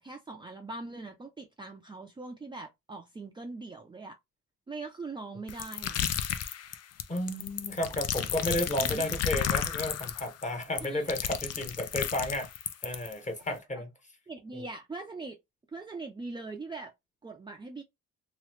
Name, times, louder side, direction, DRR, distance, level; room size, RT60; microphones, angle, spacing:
voice 1, 0.0-4.2 4.7-6.1 8.8-9.1 10.8-11.1 13.5-13.6 14.3-15.4 15.7-16.9 17.2-17.8, right 3 dB, 15° right, 0.5 m, -41 dB
sound 1, 5.5-13.1, left 9 dB, 55° left, 0.5 m, -32 dB
voice 2, 7.1-12.5 12.8-13.9 14.5-14.6, left 1 dB, 25° left, 1.1 m, -32 dB
3.0 x 2.4 x 3.1 m
cardioid pair, 90°, 30 cm